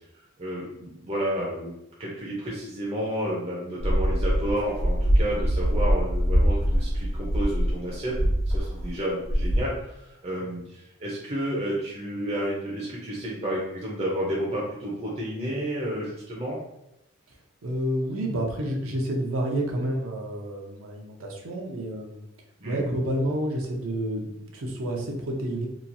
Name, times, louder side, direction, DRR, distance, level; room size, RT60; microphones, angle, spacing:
voice 1, 0.4-16.6 22.6-22.8, right 1 dB, 30° right, -5 dB, 0.5 m, -31 dB
sound 1, 3.8-9.0 9.2-9.6, equal, 80° left, 0.9 m, -23 dB
voice 2, 17.6-22.2 22.6-25.7, right 1 dB, 75° right, 0 dB, 0.6 m, -29 dB
2.9 x 2.3 x 2.6 m, 0.84 s
head